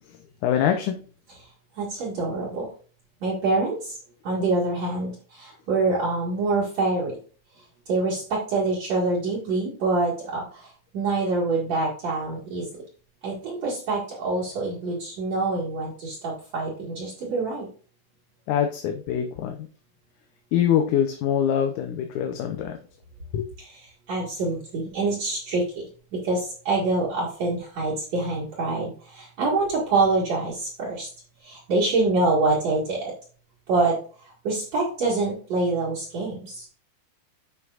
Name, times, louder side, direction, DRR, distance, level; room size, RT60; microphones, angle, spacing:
voice 1, 0.4-0.9 18.5-19.6 20.5-22.8 23.3-23.5, left 9 dB, 75° left, 5 dB, 2.0 m, -24 dB
voice 2, 1.8-2.7 3.2-3.9 4.2-7.2 7.9-10.7 10.9-12.7 13.2-17.7 23.6-23.8 24.1-25.8 26.1-31.1 31.4-33.1 33.7-34.0 34.4-36.6, right 3 dB, 55° right, -7 dB, 3.0 m, -25 dB
11.0 x 5.8 x 2.5 m, 0.41 s
omnidirectional pair, 4.0 m